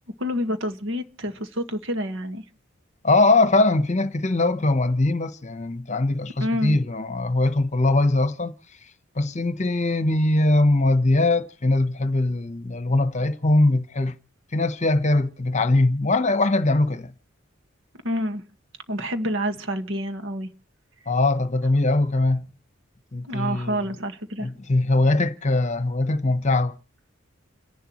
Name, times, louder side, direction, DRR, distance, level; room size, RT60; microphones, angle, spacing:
voice 1, 0.2-2.4 6.4-6.8 18.0-18.4 18.9-20.5 23.2-24.5, equal, 65° right, 1.7 m, -28 dB
voice 2, 3.0-8.5 9.2-14.2 14.5-17.1 21.1-22.5 23.1-23.8 24.4-26.8, left 2 dB, 35° left, 1.0 m, -21 dB
29.5 x 11.0 x 3.1 m
head